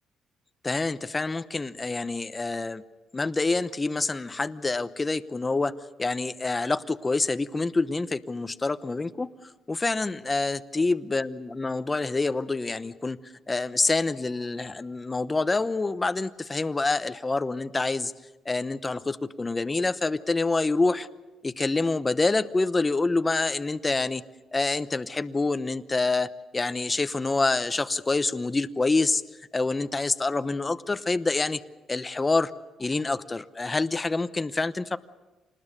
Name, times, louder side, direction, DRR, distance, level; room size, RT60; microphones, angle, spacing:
voice 1, 0.6-2.8 3.1-5.7 6.0-18.1 18.4-21.1 21.4-24.2 24.5-31.6 31.9-32.5 32.8-35.0, left 3 dB, 25° left, 11 dB, 0.9 m, -27 dB
26.5 x 20.0 x 6.7 m, 1.2 s
cardioid pair, 90°, 0 cm